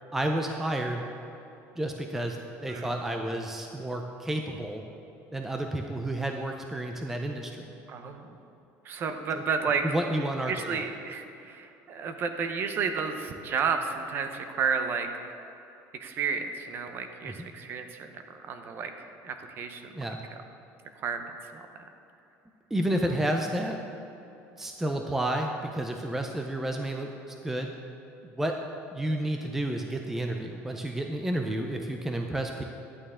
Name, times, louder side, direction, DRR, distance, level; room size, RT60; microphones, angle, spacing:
voice 1, 0.1-1.0 1.8-4.8 5.3-7.7 9.3-9.4 9.8-10.8 17.2-17.5 19.9-20.2 22.7-23.8 24.6-27.7 28.2-28.6 28.9-32.6, right 1 dB, 5° right, 3 dB, 0.4 m, -31 dB
voice 2, 7.9-8.3 8.8-10.0 10.5-15.1 16.0-18.9 19.2-19.8 21.0-21.7, right 5 dB, 35° right, 7 dB, 0.7 m, -31 dB
11.0 x 8.9 x 3.6 m, 2.9 s
cardioid pair, 160°, 6 cm